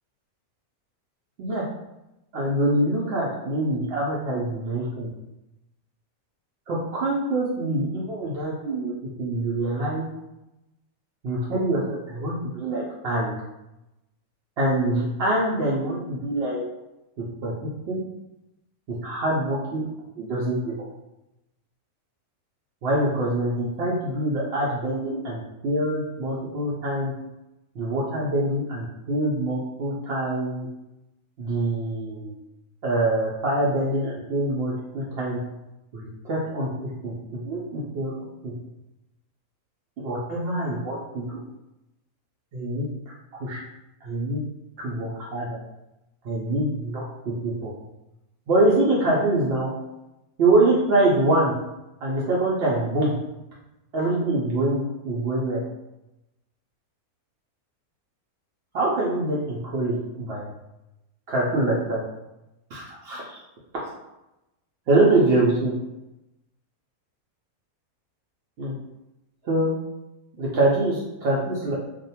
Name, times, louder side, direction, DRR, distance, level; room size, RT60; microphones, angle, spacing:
voice 1, 2.3-5.1 6.7-8.9 9.2-10.0 11.2-13.3 14.6-16.6 17.4-17.5 17.9-18.0 18.9-19.8 20.2-20.7 22.8-27.1 27.7-30.7 31.4-32.3 32.8-35.4 35.9-38.1 38.4-38.5 40.0-41.4 42.5-42.9 43.4-43.6 44.0-44.4 44.8-45.6 46.2-47.7 48.5-49.7 50.4-51.5 52.0-53.1 53.9-55.6 58.7-60.5 61.3-62.0 62.7-63.4 64.9-65.7 68.6-68.7 69.4-69.7 70.4-71.7, right 2 dB, 75° right, -5 dB, 0.5 m, -24 dB
2.5 x 2.1 x 2.8 m, 0.93 s
omnidirectional pair, 1.6 m